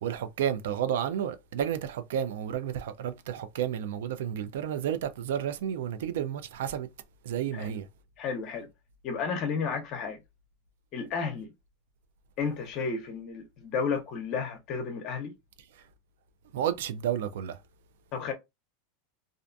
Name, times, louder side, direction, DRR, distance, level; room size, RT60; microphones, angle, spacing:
voice 1, 0.0-6.9 7.3-7.9 16.5-17.6, right 9 dB, 80° right, 0.4 m, -31 dB
voice 2, 8.2-8.7 9.0-10.2 10.9-11.5 12.4-15.3 18.1-18.3, left 5 dB, 45° left, 0.6 m, -32 dB
2.4 x 2.2 x 2.5 m
supercardioid pair, 125°, 0 cm